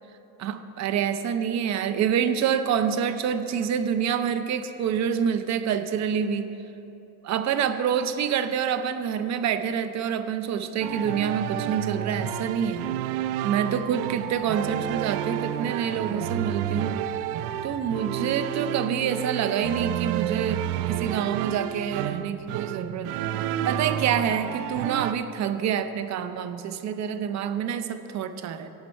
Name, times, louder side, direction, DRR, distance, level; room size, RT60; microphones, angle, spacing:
voice 1, 0.4-6.5 7.2-12.9 13.4-16.9 17.6-23.3 23.7-28.7, right 8 dB, 35° right, 10 dB, 0.6 m, -27 dB
sound 1, 10.8-25.1, right 11 dB, 75° right, 0.6 m, -30 dB
15.5 x 8.2 x 4.4 m, 3.0 s
supercardioid pair, 125°, 48 cm